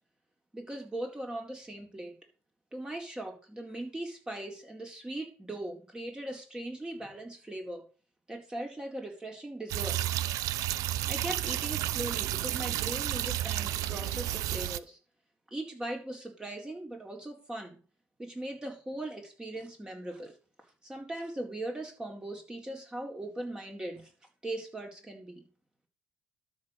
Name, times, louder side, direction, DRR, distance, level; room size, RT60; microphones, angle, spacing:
voice 1, 0.5-2.2 2.7-7.8 8.3-10.0 11.1-15.0 15.5-17.8 18.2-20.3 20.8-24.1 24.4-25.4, right 1 dB, 15° right, 2 dB, 4.1 m, -39 dB
sound 1, 9.7-14.8, right 14 dB, 75° right, 0.7 m, -31 dB
12.5 x 6.3 x 6.6 m, 0.37 s
cardioid pair, 100°, 6 cm